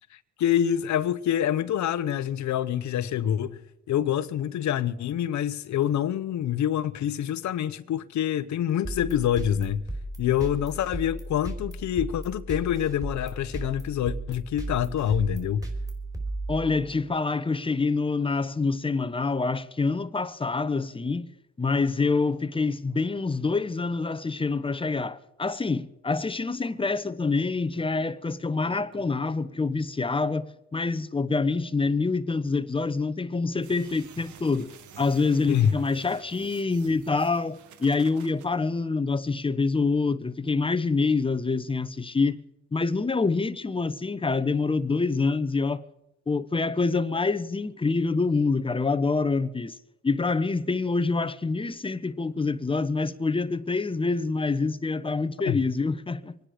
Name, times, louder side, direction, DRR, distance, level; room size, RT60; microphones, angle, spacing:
voice 1, 0.1-3.6 3.9-9.8 10.2-15.6 35.5-35.7 55.5-55.6, left 10 dB, 70° left, 0.9 m, -26 dB
sound 1, 8.8-17.0, right 1 dB, 10° right, 3.9 m, -35 dB
voice 2, 16.5-21.3 21.6-42.4 42.7-45.8 46.3-49.8 50.0-56.4, left 4 dB, 20° left, 0.8 m, -26 dB
sound 2, 25.5-25.6 26.6-26.8 27.8-27.9 28.9-29.1, right 2 dB, 40° right, 4.2 m, -56 dB
sound 3, 33.6-38.5, right 8 dB, 75° right, 1.5 m, -50 dB
25.0 x 10.0 x 5.0 m
cardioid pair, 90°, 30 cm